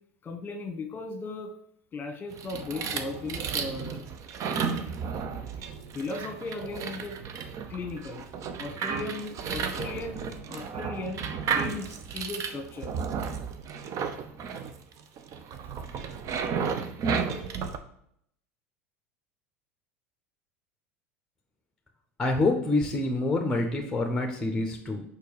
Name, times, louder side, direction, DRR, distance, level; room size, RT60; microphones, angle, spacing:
voice 1, 0.2-1.5 1.9-4.0 5.9-7.2 7.7-8.2 8.6-10.2 10.5-11.3 11.6-12.9, left 3 dB, 25° left, 5 dB, 1.6 m, -36 dB
sound 1, 2.3-17.8, right 6 dB, 45° right, 0.9 m, -33 dB
voice 2, 22.2-25.0, left 2 dB, 10° left, 2 dB, 1.3 m, -26 dB
6.8 x 5.4 x 4.8 m, 0.70 s
hypercardioid pair, 80°, 8 cm